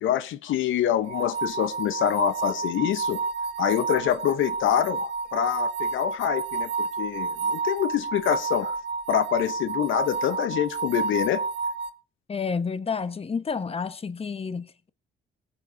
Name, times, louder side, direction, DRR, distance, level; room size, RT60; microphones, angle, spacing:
voice 1, 0.0-3.2 3.6-8.7 9.1-11.4, left 11 dB, 80° left, 0.8 m, -26 dB
sound 1, 1.1-11.9, right 4 dB, 60° right, 1.4 m, -30 dB
voice 2, 12.3-14.9, left 5 dB, 30° left, 1.1 m, -30 dB
18.5 x 8.1 x 3.8 m
cardioid pair, 90°, 20 cm